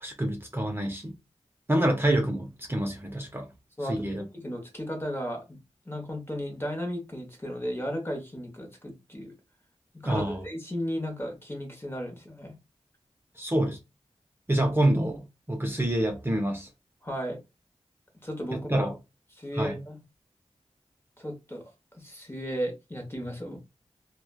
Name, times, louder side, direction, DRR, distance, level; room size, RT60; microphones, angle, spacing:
voice 1, 0.0-1.2 1.7-3.5 3.9-4.2 10.0-10.4 13.4-13.8 14.5-16.7 18.5-18.9 19.5-19.8, right 1 dB, 20° right, 0.6 m, -27 dB
voice 2, 3.8-5.6 5.9-9.3 9.9-12.6 17.0-17.4 18.2-19.0 19.4-20.0 21.2-23.6, equal, 20° left, 0.9 m, -35 dB
3.1 x 2.1 x 2.3 m
cardioid pair, 45°, 11 cm